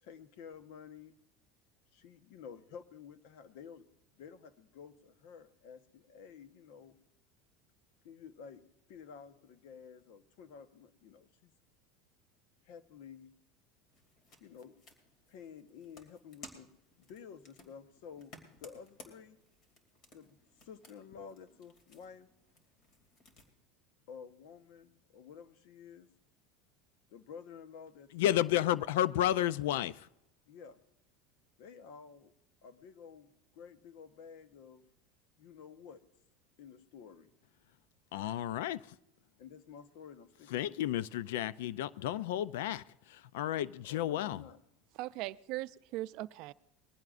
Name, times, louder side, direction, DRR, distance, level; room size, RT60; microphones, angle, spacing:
voice 1, 0.0-1.2 1.9-3.9 4.1-7.0 8.0-8.6 8.9-11.5 12.6-13.3 14.4-14.7 15.3-19.4 20.1-22.3 24.1-26.1 27.1-28.1 28.4-28.5 30.5-30.8 31.6-32.3 32.6-34.8 35.4-36.0 36.6-37.3 39.4-40.9 43.9-44.6, left 7 dB, 70° left, 1.1 m, -52 dB
sound 1, 13.9-23.5, left 2 dB, 45° left, 2.7 m, -58 dB
voice 2, 28.1-30.1 38.1-38.8 40.5-42.8 43.1-44.4, left 12 dB, 85° left, 0.4 m, -32 dB
voice 3, 45.0-46.5, right 17 dB, 60° right, 0.5 m, -39 dB
21.5 x 15.5 x 2.5 m
supercardioid pair, 140°, 0 cm